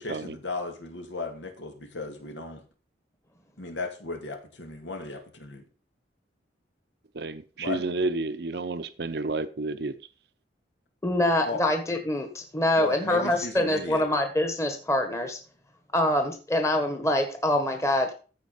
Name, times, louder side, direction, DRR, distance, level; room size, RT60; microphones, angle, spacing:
voice 1, 0.0-2.6 3.6-5.6 7.6-7.8 11.4-11.6 12.8-14.0, left 3 dB, 85° left, 2.5 m, -35 dB
voice 2, 7.7-9.9, right 2 dB, 65° right, 0.7 m, -30 dB
voice 3, 11.0-15.4 15.9-18.1, left 1 dB, 15° left, 1.4 m, -25 dB
14.5 x 5.1 x 5.1 m
head